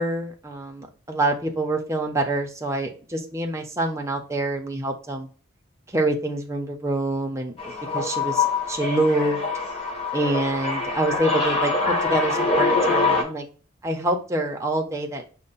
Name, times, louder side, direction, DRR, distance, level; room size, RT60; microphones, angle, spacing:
voice 1, 0.0-5.3 5.9-9.4 10.1-13.5 13.8-15.3, right 2 dB, 15° right, 2 dB, 0.5 m, -26 dB
sound 1, 7.6-13.2, left 3 dB, 30° left, 1.0 m, -24 dB
5.3 x 2.1 x 3.9 m, 0.38 s
head